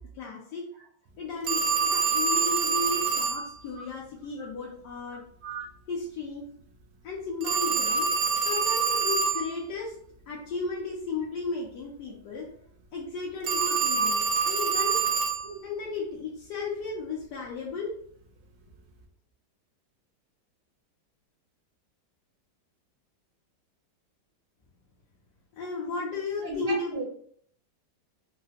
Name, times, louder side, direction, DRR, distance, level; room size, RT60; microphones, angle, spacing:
voice 1, 0.1-0.6 1.2-5.2 5.9-6.4 7.0-8.1 8.4-9.9 10.3-12.6 12.9-15.0 15.6-18.0 25.5-27.0, left 4 dB, 70° left, -3 dB, 1.2 m, -34 dB
Telephone, 1.5-3.4 7.4-9.5 13.4-15.4, right 5 dB, 75° right, 0.8 m, -26 dB
voice 2, 26.4-27.0, right 2 dB, 35° right, -4 dB, 0.9 m, -35 dB
3.8 x 2.1 x 2.8 m, 0.62 s
omnidirectional pair, 2.0 m